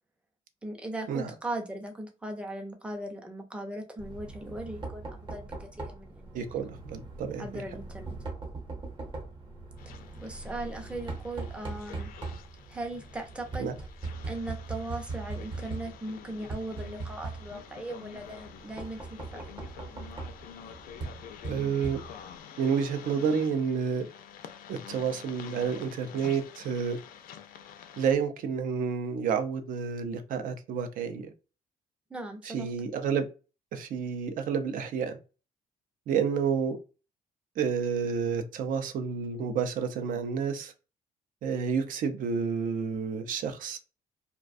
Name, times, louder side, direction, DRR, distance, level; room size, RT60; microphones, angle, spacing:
voice 1, 0.6-6.5 7.4-8.1 10.2-12.1 12.7-13.7 14.3-19.5 32.1-32.7, right 1 dB, 5° right, 4 dB, 0.5 m, -38 dB
Knock, 4.0-22.4, right 3 dB, 35° right, 0.8 m, -41 dB
voice 2, 6.3-7.6 13.6-13.8 21.5-22.0 22.6-24.1 24.7-27.0 28.0-31.3 32.4-33.3 33.7-35.2 36.1-36.8 37.6-40.7 41.4-43.8, right 6 dB, 65° right, 8 dB, 0.5 m, -30 dB
sound 1, 9.8-28.1, left 8 dB, 75° left, 0.4 m, -48 dB
2.4 x 2.2 x 2.5 m, 0.33 s
cardioid pair, 130°, 15 cm